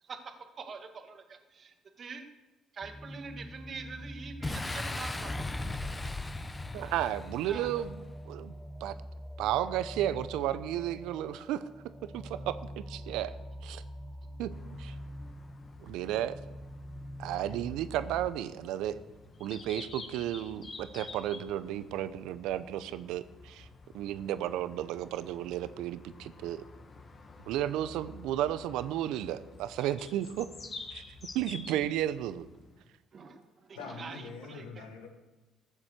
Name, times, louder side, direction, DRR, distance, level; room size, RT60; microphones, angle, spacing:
voice 1, 0.0-2.2 2.7-5.5 6.0-6.1 7.4-7.8 33.1-34.9, right 5 dB, 50° right, 6 dB, 1.8 m, -45 dB
sound 1, 2.8-18.3, equal, 5° left, 0.6 m, -45 dB
Boom, 4.4-8.0, left 2 dB, 20° left, 1.0 m, -37 dB
voice 2, 6.7-7.9 8.3-8.5 8.8-9.0 9.4-11.6 12.1-12.6 12.9-13.3 13.6-13.8 14.4-14.5 14.8-14.9 15.8-16.3 17.2-19.0 19.4-23.7 23.9-26.6 27.5-30.5 30.9-31.0 31.3-32.5, right 12 dB, 75° right, 14 dB, 0.7 m, -33 dB
sound 2, 14.5-32.9, left 3 dB, 40° left, 1.7 m, -50 dB
voice 3, 33.7-35.1, left 5 dB, 85° left, 3 dB, 1.6 m, -44 dB
14.5 x 7.3 x 6.6 m, 1.1 s
hypercardioid pair, 55°, 0 cm